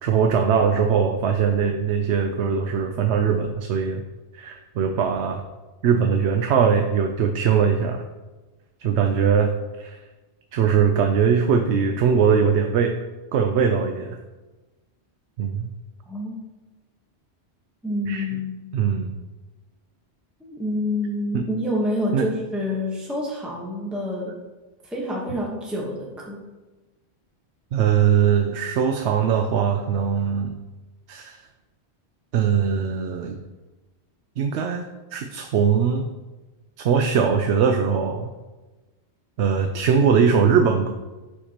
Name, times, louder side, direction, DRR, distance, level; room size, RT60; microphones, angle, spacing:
voice 1, 0.0-4.0 4.3-5.4 5.8-8.1 8.8-9.5 9.8-10.0 10.5-12.9 13.3-14.2 15.4-15.7 18.1-18.3 18.7-19.2 21.3-21.4 22.1-22.3 27.7-30.5 31.1-31.4 32.3-33.4 34.4-34.9 35.1-36.1 36.8-38.3 39.4-40.9, right 7 dB, 80° right, 5 dB, 0.9 m, -21 dB
voice 2, 17.8-18.7 20.4-24.3 24.8-26.4, left 1 dB, ahead, -4 dB, 1.1 m, -27 dB
11.5 x 4.6 x 2.9 m, 1.2 s
omnidirectional pair, 1.1 m